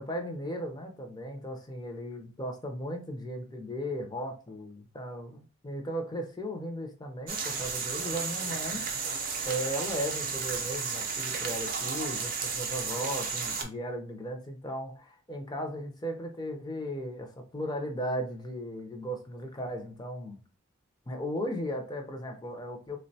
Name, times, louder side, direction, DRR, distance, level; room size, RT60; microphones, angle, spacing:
voice 1, 0.0-8.9 9.4-20.4 21.1-23.0, equal, 20° left, 0.5 m, -36 dB
sound 1, 7.3-13.6, right 5 dB, 40° right, 0.5 m, -33 dB
3.5 x 2.1 x 2.6 m
head